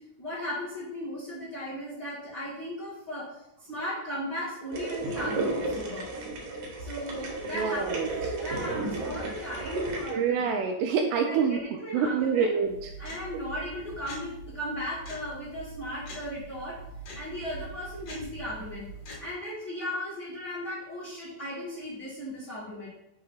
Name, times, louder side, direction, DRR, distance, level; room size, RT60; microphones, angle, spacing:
voice 1, 0.2-6.1 6.8-8.0 8.4-10.5 11.1-12.5 13.0-16.8 17.1-18.9 19.2-22.9, equal, 35° left, -9 dB, 1.7 m, -36 dB
sound 1, 4.7-10.1, right 2 dB, 65° right, 2.0 m, -33 dB
voice 2, 7.5-8.4 10.1-11.6 11.9-12.9, right 6 dB, 85° right, 4 dB, 2.5 m, -27 dB
sound 2, 12.6-19.3, right 2 dB, 55° left, 2.9 m, -43 dB
6.8 x 3.2 x 5.5 m, 0.85 s
omnidirectional pair, 5.2 m